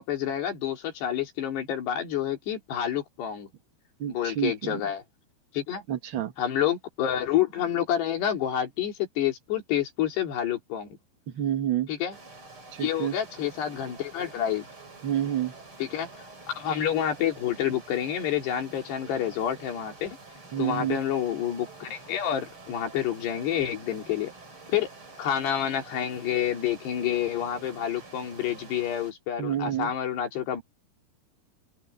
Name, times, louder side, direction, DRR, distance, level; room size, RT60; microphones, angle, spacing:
voice 1, 0.0-3.5 4.1-5.0 5.5-5.8 6.4-10.9 11.9-12.2 12.8-14.7 15.8-20.2 20.6-24.3 24.7-24.9 25.2-30.6, left 10 dB, 75° left, 5.4 m, -28 dB
voice 2, 4.0-4.8 5.9-6.3 11.3-11.9 12.7-13.1 15.0-15.5 20.5-21.0 29.4-29.9, right 11 dB, 85° right, 1.1 m, -29 dB
sound 1, 12.1-29.1, right 3 dB, 30° right, 6.4 m, -48 dB
open air
omnidirectional pair, 4.8 m